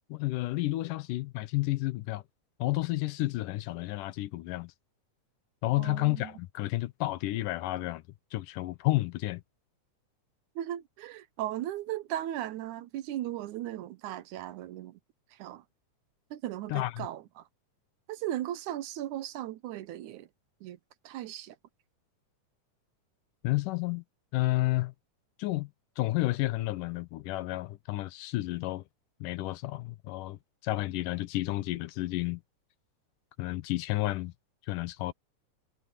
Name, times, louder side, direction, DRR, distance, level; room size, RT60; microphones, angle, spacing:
voice 1, 0.1-2.2 2.6-4.7 5.6-8.0 8.3-9.4 16.7-17.1 23.4-24.0 24.3-24.9 25.4-25.7 26.0-28.8 29.2-32.4 33.4-34.3 34.7-35.1, left 18 dB, 90° left, 2.4 m, -31 dB
voice 2, 5.8-6.3 10.6-15.0 15.3-15.6 16.3-17.5 18.1-20.3 20.6-20.8 21.0-21.6, right 13 dB, 75° right, 2.2 m, -37 dB
omnidirectional pair, 3.7 m